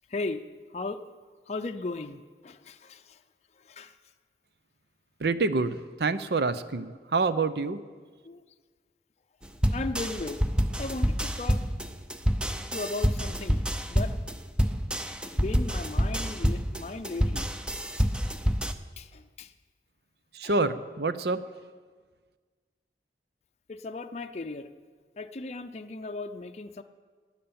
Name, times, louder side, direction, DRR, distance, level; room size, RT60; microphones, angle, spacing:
voice 1, 0.1-0.4 0.7-1.0 1.5-3.2 3.6-4.0 8.2-8.4 9.7-10.4 10.8-11.6 12.7-13.6 13.9-14.1 15.2-17.5 19.0-19.5 20.4-20.5 23.7-24.7 25.2-26.8, left 3 dB, 40° left, 7 dB, 0.5 m, -36 dB
voice 2, 5.2-7.8 20.3-21.4, right 3 dB, 65° right, 13 dB, 0.7 m, -27 dB
sound 1, 9.6-18.7, equal, 5° right, 0.6 m, -27 dB
12.5 x 10.5 x 8.7 m, 1.5 s
head